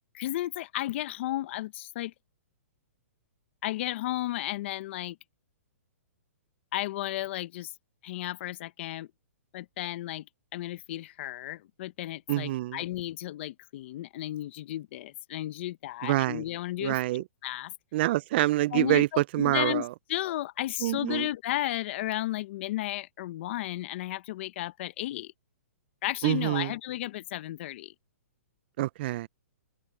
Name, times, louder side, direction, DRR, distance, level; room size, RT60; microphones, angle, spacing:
voice 1, 0.1-2.1 3.6-5.2 6.7-7.7 8.0-9.1 9.5-10.2 10.5-17.0 17.4-17.7 18.7-25.3 26.0-27.9, left 15 dB, 50° left, 1.0 m, -33 dB
voice 2, 12.3-12.8 16.0-16.4 16.8-17.2 17.9-19.9 20.8-21.3 26.2-26.7 28.8-29.3, right 16 dB, 45° right, 0.4 m, -26 dB
open air
hypercardioid pair, 140°, 8 cm